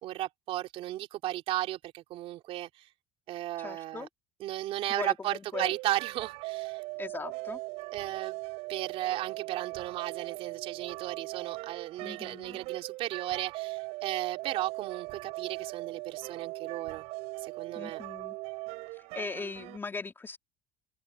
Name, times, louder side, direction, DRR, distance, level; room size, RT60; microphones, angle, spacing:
voice 1, 0.0-2.9 3.3-4.1 4.4-6.8 7.9-8.4 8.7-17.0 17.4-18.0, right 14 dB, 60° right, 4.3 m, -35 dB
voice 2, 3.6-4.1 4.9-5.7 7.0-7.6 12.0-12.6 17.7-18.4 19.1-20.4, left 4 dB, 20° left, 4.2 m, -39 dB
sound 1, 5.5-19.8, right 23 dB, 80° right, 7.4 m, -40 dB
open air
cardioid pair, 125°, 11 cm